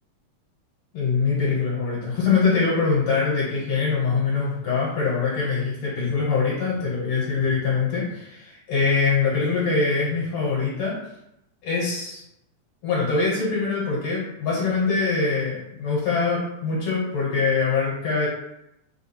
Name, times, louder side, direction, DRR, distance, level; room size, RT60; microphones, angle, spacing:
voice 1, 0.9-10.9 11.6-12.2 12.8-18.3, left 4 dB, 65° left, -5 dB, 2.4 m, -23 dB
5.0 x 2.3 x 4.3 m, 0.85 s
omnidirectional pair, 3.4 m